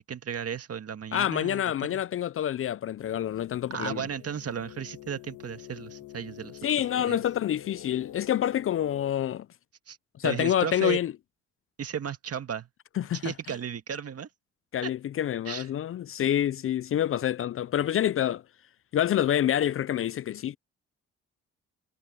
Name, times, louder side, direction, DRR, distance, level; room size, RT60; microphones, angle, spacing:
voice 1, 0.1-1.6 1.9-2.0 3.7-6.6 7.1-7.2 9.9-10.0 10.2-11.0 11.8-12.7 13.2-14.3 14.8-14.9 15.5-15.7, right 7 dB, 55° right, 1.9 m, -34 dB
voice 2, 1.1-4.1 6.6-9.5 10.2-11.1 13.0-13.2 14.7-18.4 18.9-20.6, left 11 dB, 45° left, 0.4 m, -27 dB
sound 1, 3.0-9.1, left 13 dB, 85° left, 1.7 m, -47 dB
cardioid pair, 75°, 30 cm